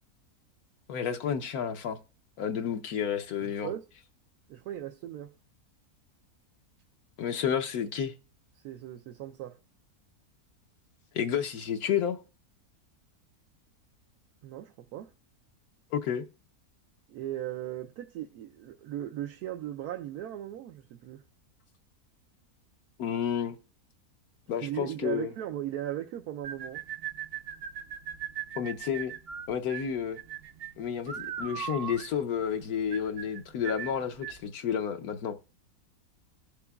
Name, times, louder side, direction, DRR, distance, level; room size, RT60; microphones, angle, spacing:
voice 1, 0.9-2.0 2.4-3.7 7.2-8.1 11.1-12.2 15.9-16.2 23.0-23.6 24.5-25.3 28.6-29.1 29.5-30.2 30.8-35.3, left 8 dB, 75° left, 1.2 m, -31 dB
voice 2, 3.4-3.8 4.5-5.3 8.6-9.6 14.4-15.1 17.1-21.2 24.6-26.8, right 12 dB, 80° right, 1.1 m, -37 dB
sound 1, 26.4-34.5, right 9 dB, 55° right, 0.7 m, -39 dB
16.5 x 6.9 x 2.3 m
omnidirectional pair, 1.6 m